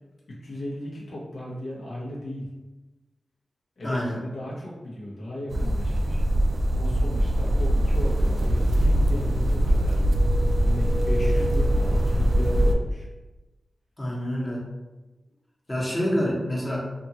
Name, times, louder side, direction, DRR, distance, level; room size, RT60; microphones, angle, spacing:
voice 1, 0.4-2.5 3.8-6.2 6.7-10.0 10.6-13.1 15.7-16.0, left 1 dB, 80° left, -6 dB, 0.9 m, -36 dB
voice 2, 3.8-4.2 14.0-14.6 15.7-16.8, equal, 25° left, -4 dB, 1.0 m, -27 dB
sound 1, 5.5-12.8, equal, 65° right, 0.3 m, -22 dB
2.6 x 2.5 x 2.8 m, 1.1 s
cardioid pair, 45°, 0 cm